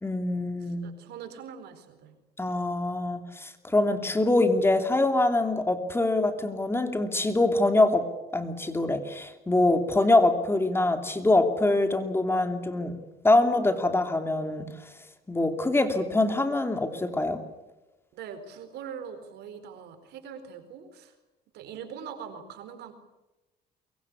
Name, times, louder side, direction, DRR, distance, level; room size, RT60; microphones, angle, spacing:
voice 1, 0.0-0.9 2.4-8.1 8.3-13.0 13.2-14.7 15.3-17.4, left 2 dB, 15° left, 7 dB, 2.8 m, -24 dB
voice 2, 0.8-2.2 18.1-21.1 21.5-22.9, right 7 dB, 75° right, 9 dB, 4.3 m, -42 dB
24.0 x 22.0 x 8.4 m, 1.0 s
cardioid pair, 110°, 17 cm